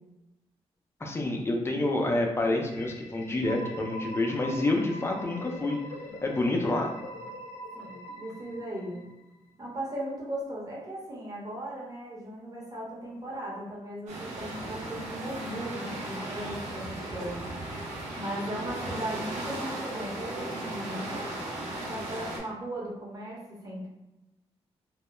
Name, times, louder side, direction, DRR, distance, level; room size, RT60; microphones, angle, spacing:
voice 1, 1.0-5.8 6.2-6.9, left 2 dB, 20° left, 1 dB, 0.5 m, -28 dB
sound 1, 2.6-9.4, equal, 90° left, 0.4 m, -43 dB
voice 2, 6.5-6.8 7.7-9.0 9.6-17.5 18.2-21.3 21.9-23.9, right 1 dB, 30° right, -5 dB, 0.9 m, -37 dB
sound 2, 14.1-22.4, right 1 dB, 85° right, 0.5 m, -36 dB
2.2 x 2.0 x 3.0 m, 0.99 s
cardioid pair, 90°, 11 cm